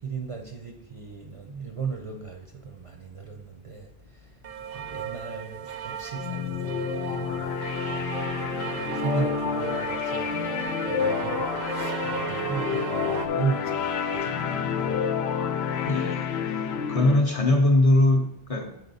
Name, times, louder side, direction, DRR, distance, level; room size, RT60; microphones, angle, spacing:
voice 1, 0.0-4.3 4.7-8.4 8.8-10.4 10.9-14.9, right 5 dB, 40° right, 2 dB, 0.6 m, -36 dB
sound 1, 4.4-13.3, right 8 dB, 70° right, 0.8 m, -35 dB
sound 2, 6.1-17.2, left 7 dB, 85° left, 0.8 m, -29 dB
voice 2, 15.9-16.4 16.9-18.8, left 1 dB, 40° left, 2 dB, 0.6 m, -21 dB
8.1 x 4.1 x 4.0 m, 0.81 s
omnidirectional pair, 1.0 m